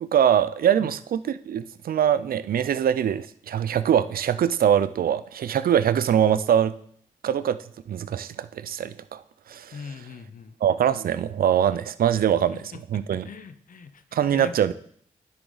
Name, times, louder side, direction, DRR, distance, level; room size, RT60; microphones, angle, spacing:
voice 1, 0.0-6.7 7.2-7.6 7.9-9.2 9.5-9.8 10.6-13.3 14.1-14.7, right 9 dB, 75° right, 15 dB, 0.4 m, -23 dB
voice 2, 9.7-10.6 12.5-14.7, left 5 dB, 65° left, 12 dB, 0.7 m, -42 dB
9.6 x 6.1 x 3.9 m, 0.63 s
supercardioid pair, 45°, 15 cm